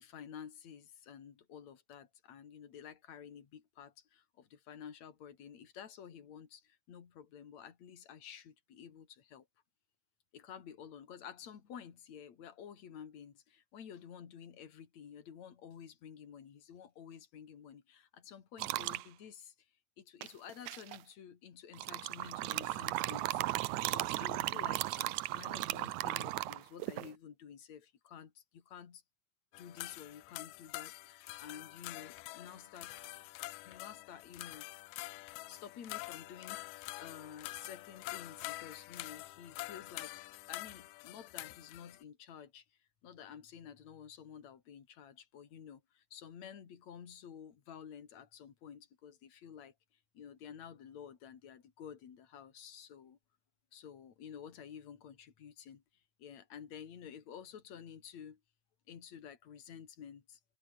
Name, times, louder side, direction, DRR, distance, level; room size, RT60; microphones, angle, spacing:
voice 1, 0.0-9.5 10.3-19.7 20.0-23.4 23.8-29.0 29.6-32.9 33.6-34.7 35.5-42.7 43.0-49.7 50.1-53.2 53.7-55.8 56.2-58.4 58.9-60.4, left 8 dB, 60° left, 3.8 m, -51 dB
sound 1, 18.6-19.0 20.2-21.0 21.7-27.1, right 17 dB, 75° right, 1.9 m, -36 dB
sound 2, 29.5-42.0, left 20 dB, 90° left, 2.2 m, -46 dB
omnidirectional pair, 3.7 m